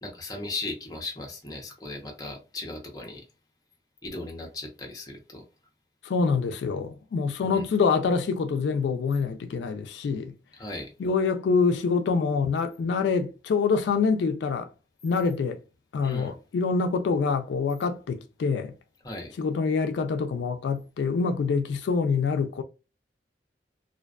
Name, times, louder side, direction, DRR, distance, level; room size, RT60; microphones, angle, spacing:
voice 1, 0.0-3.2 4.0-5.4 7.4-7.6 10.6-10.9 16.0-16.3 19.0-19.3, left 2 dB, 20° left, 0.6 m, -37 dB
voice 2, 6.0-10.3 11.0-14.7 15.0-15.6 15.9-18.7 19.4-22.6, left 5 dB, 85° left, 0.3 m, -26 dB
2.4 x 2.2 x 2.3 m
head